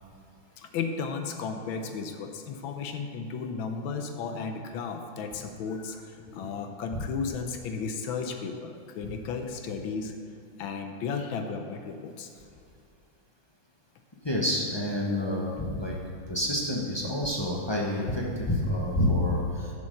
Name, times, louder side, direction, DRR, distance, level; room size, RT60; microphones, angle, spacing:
voice 1, 0.6-10.1 10.6-12.3, left 5 dB, 80° left, 5 dB, 1.5 m, -34 dB
voice 2, 14.2-16.0 16.3-19.7, left 1 dB, 35° left, -3 dB, 0.4 m, -28 dB
8.4 x 7.0 x 6.4 m, 2.3 s
omnidirectional pair, 2.2 m